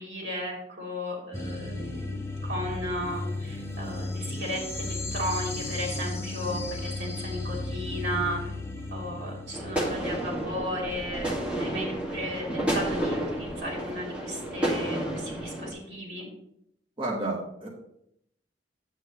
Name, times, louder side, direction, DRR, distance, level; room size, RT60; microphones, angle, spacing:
voice 1, 0.0-8.5 8.9-11.3 11.5-16.2, equal, 80° right, -2 dB, 3.1 m, -35 dB
sound 1, 1.3-10.4, left 2 dB, 15° left, 0.7 m, -34 dB
sound 2, 9.5-15.7, right 1 dB, 5° right, 1.9 m, -31 dB
voice 2, 17.0-17.7, right 2 dB, 30° right, -4 dB, 1.5 m, -31 dB
8.9 x 7.9 x 3.1 m, 0.76 s
head